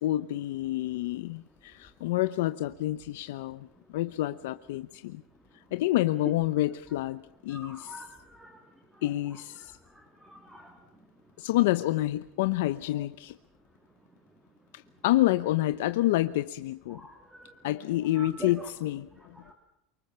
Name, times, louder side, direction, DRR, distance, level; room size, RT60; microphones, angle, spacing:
voice 1, 0.0-3.7 3.9-5.2 5.7-8.0 9.0-9.8 11.4-13.4 14.7-17.0 17.6-19.3, left 16 dB, 80° left, 11 dB, 0.8 m, -28 dB
voice 2, 7.5-8.1 8.4-8.5 10.3-10.7 17.0-17.5 18.2-18.5 19.5-19.6, right 1 dB, 5° right, 3 dB, 2.7 m, -44 dB
28.0 x 24.5 x 5.8 m, 0.81 s
cardioid pair, 180°, 0 cm